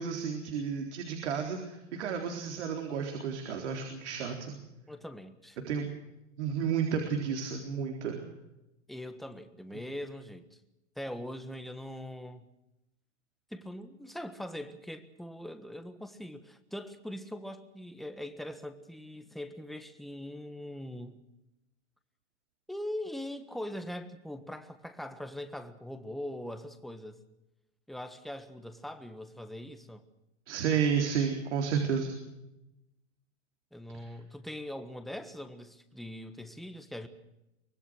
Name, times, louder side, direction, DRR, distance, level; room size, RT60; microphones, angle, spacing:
voice 1, 0.0-4.6 5.6-5.9 6.4-8.2 30.5-32.1, right 7 dB, 70° right, 3 dB, 4.0 m, -31 dB
voice 2, 4.9-5.6 8.9-10.5 10.9-12.5 13.5-21.2 22.7-27.2 27.9-30.0 33.7-37.1, left 1 dB, ahead, 8 dB, 1.4 m, -41 dB
24.5 x 20.0 x 6.4 m, 0.91 s
supercardioid pair, 145°, 36 cm